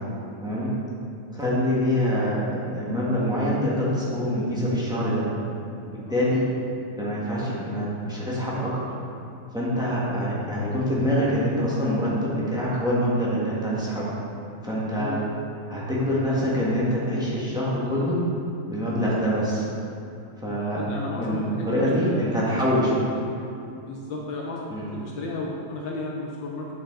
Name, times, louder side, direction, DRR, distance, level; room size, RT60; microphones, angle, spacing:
voice 1, 0.4-0.7 1.3-5.3 6.1-6.5 7.0-8.7 9.5-14.1 14.6-15.1 15.7-18.2 18.7-19.6 20.4-20.8 21.1-23.1 24.7-24.9, equal, ahead, -8 dB, 1.1 m, -25 dB
voice 2, 6.1-6.5 14.9-15.3 20.4-22.2 23.8-26.7, left 2 dB, 70° left, -2 dB, 1.3 m, -34 dB
7.6 x 5.9 x 3.7 m, 2.6 s
omnidirectional pair, 2.4 m